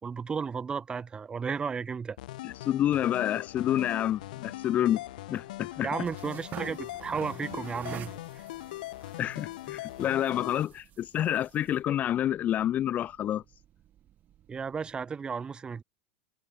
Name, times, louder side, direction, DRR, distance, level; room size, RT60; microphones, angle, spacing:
voice 1, 0.0-2.2 5.8-8.4 14.5-15.8, right 5 dB, 20° right, 4.7 m, -34 dB
sound 1, 2.2-10.6, left 17 dB, 70° left, 7.8 m, -41 dB
voice 2, 2.4-5.0 5.3-5.9 9.2-13.4, left 11 dB, 35° left, 3.2 m, -28 dB
sound 2, 3.8-15.0, right 11 dB, 35° right, 6.2 m, -50 dB
hypercardioid pair, 110°, 5 cm